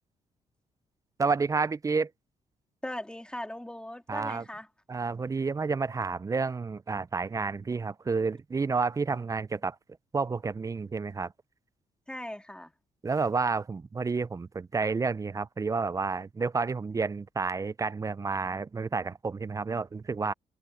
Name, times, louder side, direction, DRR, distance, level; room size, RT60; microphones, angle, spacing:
voice 1, 1.2-2.1 4.1-4.5 4.9-9.8 10.1-11.3 13.0-20.3, right 4 dB, 25° right, 0.4 m, -30 dB
voice 2, 2.8-4.7 12.1-12.7, left 1 dB, 5° left, 2.7 m, -39 dB
cardioid pair, 95°, 14 cm